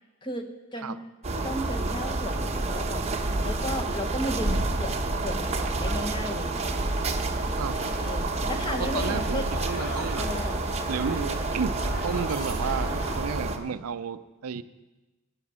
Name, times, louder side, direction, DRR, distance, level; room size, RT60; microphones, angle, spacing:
voice 1, 0.7-1.0 1.4-3.1 3.4-6.5 8.0-9.5 10.2-10.6, left 1 dB, 20° left, 5 dB, 0.9 m, -34 dB
sound 1, 1.2-13.6, right 2 dB, 30° right, 0.8 m, -29 dB
sound 2, 7.6-13.2, left 1 dB, 80° left, 2.0 m, -40 dB
voice 2, 8.8-10.3 10.9-14.6, right 6 dB, 85° right, 13 dB, 0.5 m, -32 dB
11.0 x 10.0 x 5.6 m, 1.1 s
head